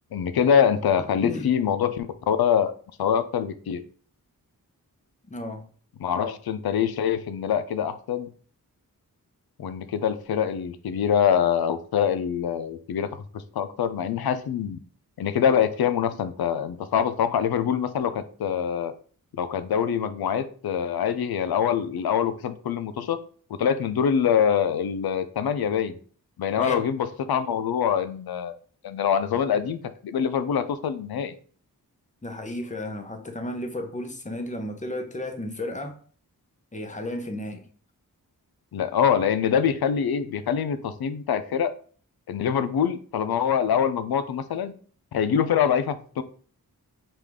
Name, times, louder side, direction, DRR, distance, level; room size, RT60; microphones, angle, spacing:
voice 1, 0.1-2.7 3.0-3.8 6.0-8.3 9.6-14.8 15.2-18.9 19.3-23.2 23.6-26.0 26.4-28.6 28.8-31.3 38.7-41.7 42.3-44.7 45.1-46.2, left 8 dB, 80° left, 0.5 m, -24 dB
voice 2, 5.3-5.7 26.6-26.8 32.2-36.0 36.7-37.7, left 1 dB, 20° left, 0.8 m, -33 dB
5.0 x 2.5 x 3.5 m
cardioid pair, 60°, 37 cm